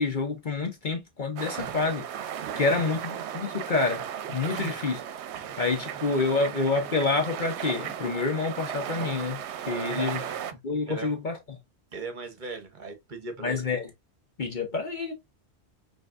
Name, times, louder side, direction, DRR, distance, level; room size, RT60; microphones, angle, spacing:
voice 1, 0.0-2.0 2.6-5.0 5.6-10.2 10.6-11.6 13.4-13.9 14.4-15.1, left 3 dB, 50° left, 0.9 m, -28 dB
sound 1, 1.4-10.5, right 9 dB, 80° right, 0.8 m, -36 dB
voice 2, 2.4-3.0 4.5-4.8 5.3-5.5 9.7-10.4 10.9-11.2 11.9-13.6, right 4 dB, 50° right, 1.0 m, -38 dB
5.5 x 2.7 x 2.4 m
omnidirectional pair, 1.1 m